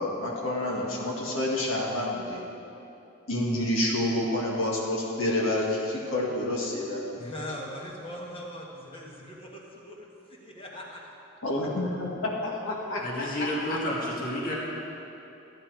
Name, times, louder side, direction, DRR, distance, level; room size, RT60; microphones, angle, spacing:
voice 1, 0.0-2.4 3.3-7.0 11.4-13.5, left 1 dB, 65° left, -3 dB, 1.7 m, -28 dB
voice 2, 7.1-11.1, equal, 25° left, -2 dB, 1.6 m, -41 dB
voice 3, 13.0-14.5, left 1 dB, 40° left, -5 dB, 2.0 m, -30 dB
13.5 x 9.7 x 4.7 m, 2.8 s
head